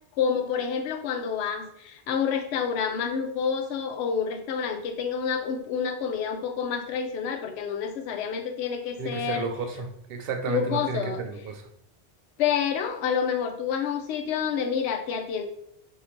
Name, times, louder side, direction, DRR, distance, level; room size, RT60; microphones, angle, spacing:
voice 1, 0.2-9.5 10.5-11.3 12.4-15.5, left 7 dB, 75° left, 4 dB, 0.8 m, -28 dB
voice 2, 9.0-11.7, right 5 dB, 65° right, 5 dB, 0.8 m, -32 dB
2.9 x 2.6 x 4.2 m, 0.73 s
omnidirectional pair, 1.1 m